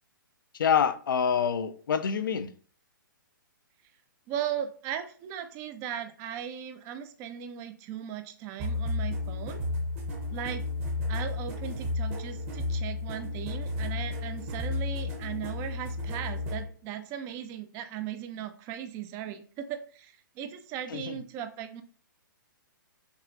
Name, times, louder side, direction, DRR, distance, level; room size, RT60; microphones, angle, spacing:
voice 1, 0.5-2.5 20.9-21.2, left 7 dB, 70° left, 0.4 m, -26 dB
voice 2, 4.3-9.6 10.3-10.6 11.1-21.8, right 9 dB, 25° right, 0.4 m, -37 dB
sound 1, 8.6-16.6, left 2 dB, 40° right, 1.1 m, -32 dB
6.0 x 2.4 x 2.6 m
hypercardioid pair, 130°, 11 cm